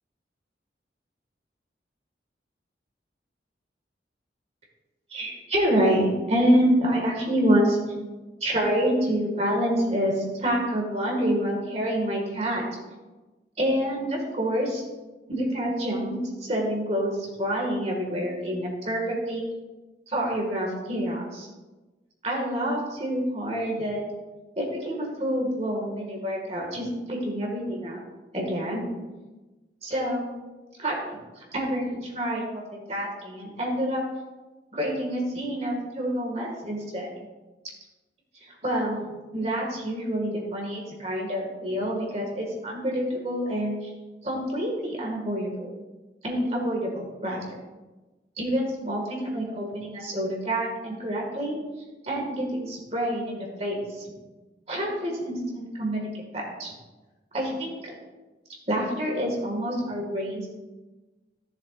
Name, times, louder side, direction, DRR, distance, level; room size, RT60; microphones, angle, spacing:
voice 1, 5.1-7.8 8.4-12.6 13.6-14.8 15.3-19.4 20.1-21.5 22.2-24.0 24.6-28.0 28.3-28.9 29.8-30.3 30.8-31.0 31.4-34.0 34.7-37.1 38.4-43.9 44.2-45.7 46.2-47.6 48.4-51.6 52.0-54.0 54.7-56.1 56.3-56.7 57.3-57.9 58.7-60.5, equal, 35° right, -1 dB, 2.0 m, -27 dB
15.5 x 7.1 x 2.6 m, 1.2 s
head